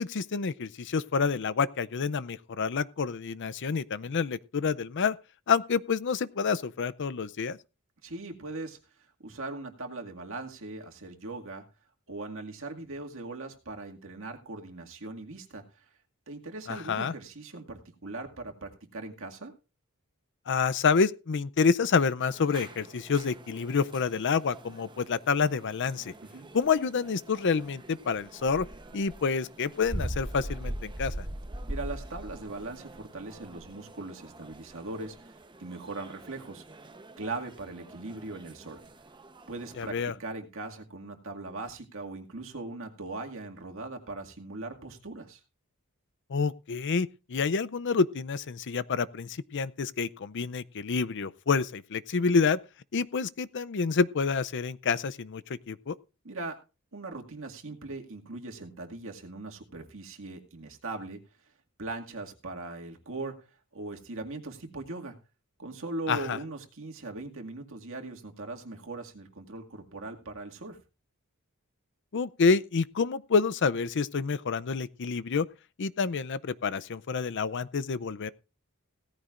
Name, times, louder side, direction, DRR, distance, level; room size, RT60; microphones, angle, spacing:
voice 1, 0.0-5.2 5.5-7.6 16.7-17.1 20.5-26.1 26.5-28.7 28.9-31.1 39.8-40.1 46.3-52.6 52.9-55.4 55.7-55.9 66.1-66.4 72.1-75.5 75.8-78.3, left 5 dB, 55° left, 0.5 m, -28 dB
voice 2, 8.0-8.8 9.2-11.6 12.1-15.9 16.3-19.5 26.2-26.5 31.7-36.7 37.2-38.8 39.5-45.4 56.2-56.6 56.9-61.2 61.8-63.4 63.7-65.1 65.6-70.8, right 2 dB, 60° right, 2.1 m, -40 dB
sound 1, 22.2-39.9, right 1 dB, 20° right, 0.9 m, -43 dB
17.0 x 14.0 x 2.5 m
head